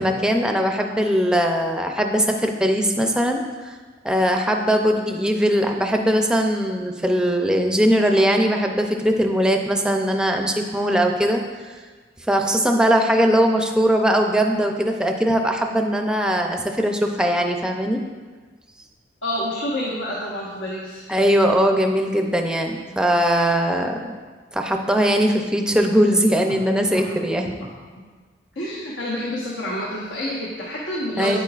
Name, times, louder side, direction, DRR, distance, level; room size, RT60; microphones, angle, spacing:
voice 1, 0.0-3.7 4.0-11.4 12.3-18.0 21.1-24.1 24.5-27.5 31.2-31.4, equal, 5° right, 3 dB, 0.5 m, -20 dB
voice 2, 19.2-21.0 26.9-27.0 28.5-31.4, left 1 dB, 85° left, -6 dB, 1.3 m, -28 dB
9.3 x 8.4 x 2.4 m, 1.4 s
head